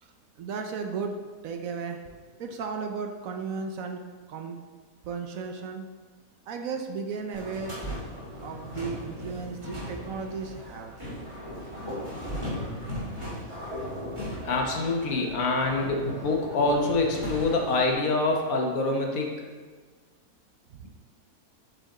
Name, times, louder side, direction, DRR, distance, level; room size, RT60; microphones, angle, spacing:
voice 1, 0.0-1.1 1.4-2.1 2.4-4.0 4.3-4.6 5.0-5.9 6.5-7.8 8.4-11.0 20.7-20.9, right 5 dB, 70° right, 4 dB, 1.0 m, -35 dB
sound 1, 7.3-17.9, equal, 20° right, 2.2 m, -37 dB
voice 2, 14.2-19.3, left 2 dB, 65° left, 1 dB, 1.4 m, -26 dB
7.8 x 5.1 x 3.8 m, 1.4 s
omnidirectional pair, 1.6 m